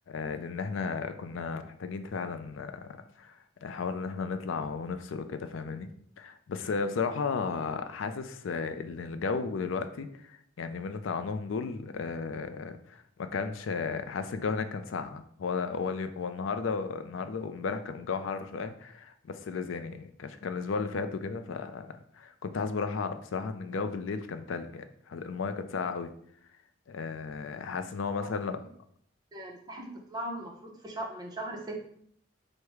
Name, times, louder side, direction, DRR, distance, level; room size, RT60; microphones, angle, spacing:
voice 1, 0.1-5.9 6.2-26.1 26.9-28.6, left 5 dB, 80° left, 9 dB, 0.4 m, -34 dB
voice 2, 29.3-31.8, right 1 dB, 20° right, 0 dB, 0.7 m, -39 dB
4.7 x 2.1 x 4.6 m, 0.64 s
head